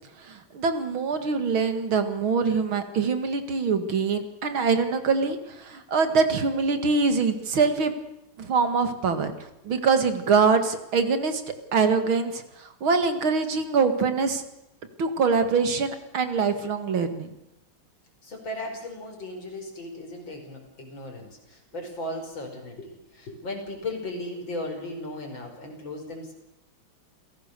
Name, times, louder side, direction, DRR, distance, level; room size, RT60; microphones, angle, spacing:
voice 1, 0.2-7.9 8.4-9.3 9.6-11.4 11.7-14.4 15.0-17.3, right 5 dB, 70° right, 9 dB, 2.7 m, -24 dB
voice 2, 18.2-26.3, left 1 dB, 60° left, 2 dB, 6.0 m, -36 dB
28.5 x 17.5 x 6.8 m, 0.89 s
omnidirectional pair, 2.4 m